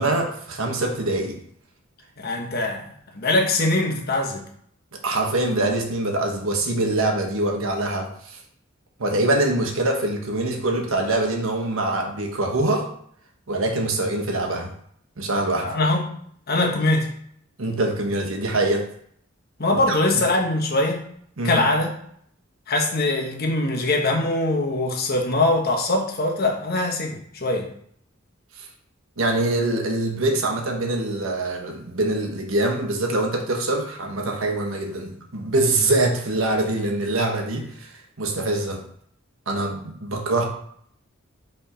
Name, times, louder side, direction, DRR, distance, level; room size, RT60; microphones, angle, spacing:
voice 1, 0.0-1.4 4.9-8.4 9.0-12.9 13.5-14.7 15.2-15.7 17.6-18.9 21.4-21.6 28.6-28.7 29.2-37.9 38.2-38.8 39.5-40.5, right 2 dB, 85° right, 3 dB, 1.1 m, -24 dB
voice 2, 2.2-2.8 3.1-4.4 15.6-16.2 16.5-17.1 19.6-21.1 21.4-21.9 22.7-27.7, left 2 dB, 50° left, 1 dB, 1.2 m, -22 dB
5.6 x 3.5 x 5.0 m, 0.65 s
head